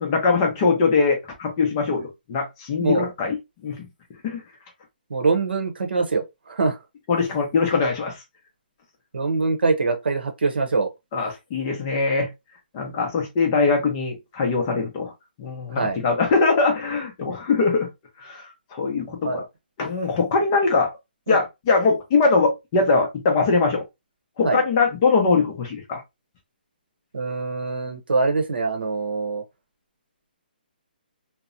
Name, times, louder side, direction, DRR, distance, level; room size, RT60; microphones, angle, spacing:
voice 1, 0.0-3.4 3.6-3.9 4.2-4.4 7.1-8.2 11.1-12.3 12.7-15.1 15.4-17.9 18.2-19.4 19.8-20.9 21.3-23.8 24.4-26.0, left 4 dB, 20° left, 0.5 m, -22 dB
voice 2, 2.8-3.1 5.1-6.8 9.1-10.9 15.7-16.0 19.2-19.4 21.3-21.4 24.4-24.6 27.1-29.4, right 3 dB, 85° right, 0.8 m, -24 dB
2.8 x 2.0 x 2.4 m
hypercardioid pair, 170°, 5 cm